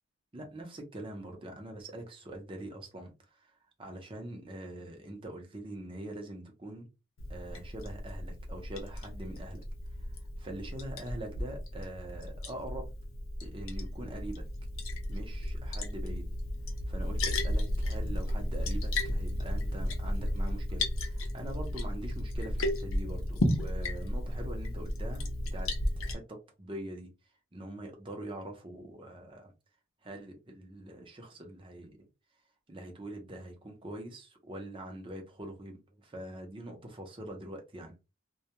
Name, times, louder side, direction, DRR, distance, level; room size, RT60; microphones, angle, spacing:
voice 1, 0.3-3.5 3.8-6.9 7.3-9.6 10.0-12.9 13.4-14.4 15.1-16.3 16.9-27.1 27.5-29.5 30.0-32.1 32.7-38.0, right 1 dB, 25° right, 0.6 m, -43 dB
Liquid, 7.2-26.1, left 1 dB, 75° left, 0.6 m, -34 dB
2.2 x 2.2 x 2.8 m
head